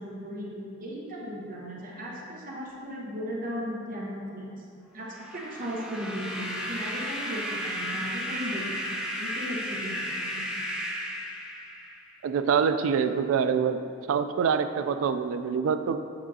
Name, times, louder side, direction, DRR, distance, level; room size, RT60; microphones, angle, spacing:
voice 1, 0.0-4.6 4.9-10.5, equal, 45° right, -3 dB, 0.9 m, -36 dB
sound 1, 5.1-12.1, equal, 5° right, 0.6 m, -34 dB
voice 2, 12.2-13.8 14.1-16.0, right 6 dB, 90° right, 10 dB, 0.3 m, -25 dB
7.3 x 5.9 x 2.7 m, 2.4 s
head